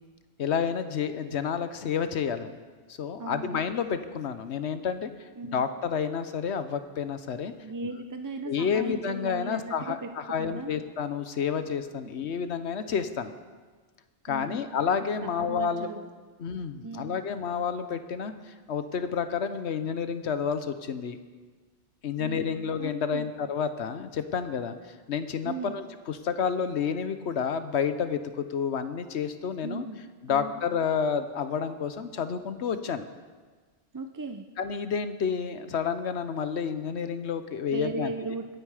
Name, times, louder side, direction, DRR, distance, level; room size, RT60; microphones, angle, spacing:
voice 1, 0.4-2.6 3.0-5.1 5.5-7.5 8.5-13.3 14.2-15.9 16.4-21.2 22.0-24.7 25.1-29.9 30.2-33.1 34.6-38.1, left 7 dB, 70° left, 10 dB, 1.1 m, -30 dB
voice 2, 3.2-3.6 5.4-5.6 7.6-10.7 12.0-12.3 14.3-14.7 15.2-16.0 16.8-17.2 22.2-22.5 22.8-23.3 25.4-25.8 29.6-30.0 30.3-30.5 33.9-34.5 37.7-38.5, right 3 dB, 25° right, 6 dB, 0.4 m, -37 dB
21.5 x 9.3 x 4.9 m, 1.4 s
omnidirectional pair, 1.2 m